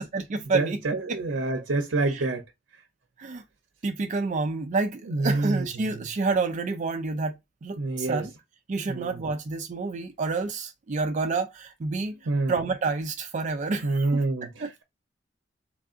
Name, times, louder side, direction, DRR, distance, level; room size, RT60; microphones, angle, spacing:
voice 1, 0.0-0.8 1.1-1.6 2.1-2.3 3.2-3.4 3.8-7.3 7.6-8.3 8.7-12.1 12.5-14.2 14.6-14.7, right 3 dB, 40° right, 0.4 m, -29 dB
voice 2, 0.5-2.4 5.1-6.0 7.8-8.2 8.9-9.2 12.3-12.6 13.8-14.8, right 2 dB, 90° right, 0.6 m, -27 dB
3.3 x 2.5 x 3.6 m
head